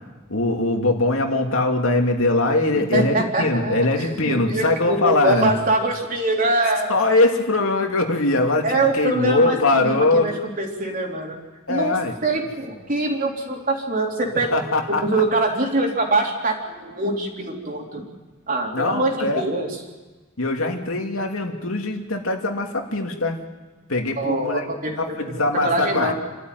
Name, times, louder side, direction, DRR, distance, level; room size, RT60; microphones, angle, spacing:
voice 1, 0.3-5.5 6.9-8.7 8.9-10.3 11.7-12.1 14.5-15.0 18.7-19.4 20.4-23.4 23.9-24.6 25.0-26.1, left 2 dB, 85° left, 3 dB, 2.7 m, -21 dB
voice 2, 2.9-7.0 8.6-11.4 11.7-12.0 12.2-14.6 14.9-18.0 18.5-19.8 24.2-25.2 25.6-26.1, right 2 dB, 45° right, 0 dB, 3.7 m, -23 dB
28.0 x 13.0 x 9.4 m, 1.3 s
head